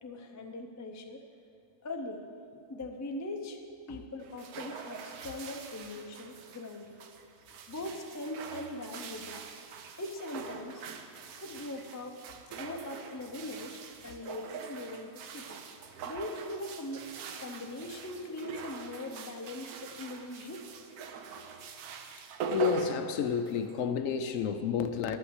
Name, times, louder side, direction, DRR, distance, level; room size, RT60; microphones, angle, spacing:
voice 1, 0.0-1.2 1.8-2.3 2.7-3.6 3.9-7.0 7.7-9.4 10.0-10.8 11.4-12.2 12.6-15.6 16.1-17.1 17.4-20.7, left 1 dB, 25° left, 3 dB, 0.3 m, -41 dB
sound 1, 4.2-23.8, right 5 dB, 80° right, 1.3 m, -43 dB
voice 2, 22.5-25.2, left 7 dB, 70° left, 8 dB, 0.9 m, -30 dB
11.5 x 5.8 x 8.0 m, 2.5 s
omnidirectional pair, 1.6 m